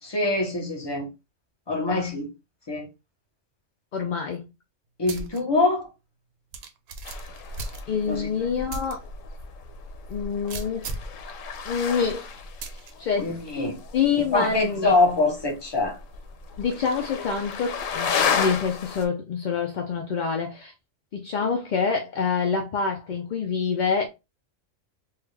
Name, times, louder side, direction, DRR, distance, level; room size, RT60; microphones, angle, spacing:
voice 1, 0.0-1.1 1.7-2.3 2.7-2.9 5.0-5.9 8.1-8.3 13.2-13.8 14.2-16.0, left 2 dB, 25° left, 0.8 m, -24 dB
voice 2, 3.9-4.4 7.9-9.0 10.1-10.9 11.7-12.2 13.0-13.3 13.9-14.9 16.6-20.7 21.1-24.2, left 6 dB, 60° left, 0.4 m, -26 dB
sound 1, 5.1-5.4 5.8-5.9 6.5-8.2 8.7-8.9 9.4-9.5 10.5-11.2 12.6-12.9, right 3 dB, 60° right, 0.8 m, -36 dB
sound 2, 7.1-19.1, left 6 dB, 90° left, 1.0 m, -33 dB
3.5 x 2.4 x 3.1 m
omnidirectional pair, 1.3 m